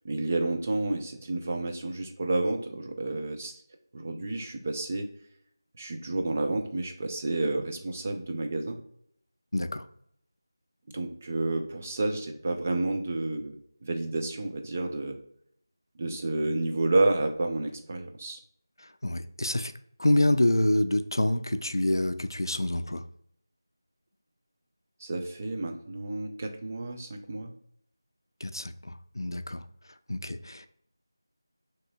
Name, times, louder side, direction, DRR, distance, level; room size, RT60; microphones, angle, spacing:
voice 1, 0.0-3.6 3.9-5.1 5.8-8.8 10.9-15.2 16.0-18.4 25.0-27.5, right 2 dB, 30° right, 4 dB, 0.4 m, -30 dB
voice 2, 9.5-9.8 19.0-19.7 20.0-23.0 28.4-29.6 30.1-30.7, left 1 dB, 80° left, 10 dB, 0.4 m, -27 dB
4.9 x 3.0 x 2.3 m, 0.68 s
figure-of-eight pair, 170°, 2 cm